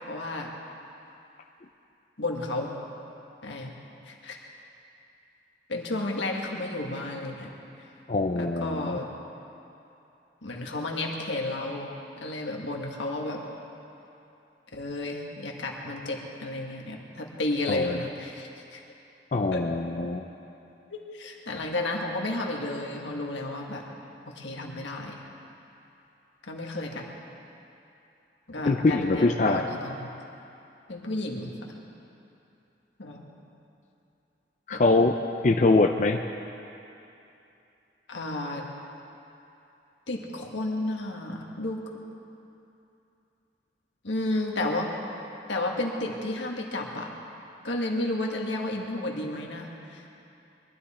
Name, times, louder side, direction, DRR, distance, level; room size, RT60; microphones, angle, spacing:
voice 1, 0.1-0.5 2.2-2.7 3.4-3.7 4.1-4.4 5.7-7.5 8.4-9.1 10.4-11.9 12.2-13.4 14.7-18.8 19.5-19.6 20.9-23.9 24.3-25.1 26.4-27.1 28.5-30.1 30.9-31.5 33.0-33.2 34.7-34.8 38.1-38.6 40.1-41.9 44.0-44.9 45.5-47.1 47.6-50.1, left 2 dB, 85° left, 0 dB, 1.8 m, -32 dB
voice 2, 8.1-9.0 17.7-17.8 19.3-20.3 28.6-29.8 34.7-35.2 35.4-36.2, left 3 dB, 40° left, 4 dB, 0.5 m, -23 dB
21.5 x 12.5 x 4.3 m, 2.8 s
head